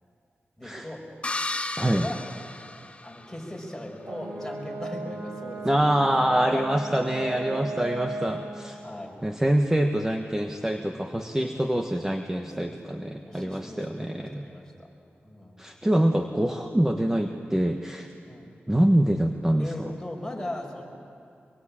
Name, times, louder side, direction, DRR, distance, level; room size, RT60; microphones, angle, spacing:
voice 1, 0.6-1.0 1.8-2.2 3.0-5.9 6.5-6.8 7.2-7.8 8.2-8.4 8.8-9.2 11.4-11.6 12.3-12.9 13.2-14.9 15.2-15.6 18.3-18.5 19.6-20.8, left 1 dB, 10° left, 0 dB, 5.8 m, -39 dB
sound 1, 1.2-3.5, left 2 dB, 30° left, 1.0 m, -34 dB
voice 2, 1.8-2.1 5.6-8.8 9.2-14.5 15.6-18.1 18.7-19.9, right 1 dB, 10° right, 4 dB, 1.4 m, -25 dB
Brass instrument, 4.0-8.5, right 3 dB, 65° right, 5.0 m, -35 dB
24.0 x 23.0 x 8.8 m, 2.4 s
cardioid pair, 70°, 4 cm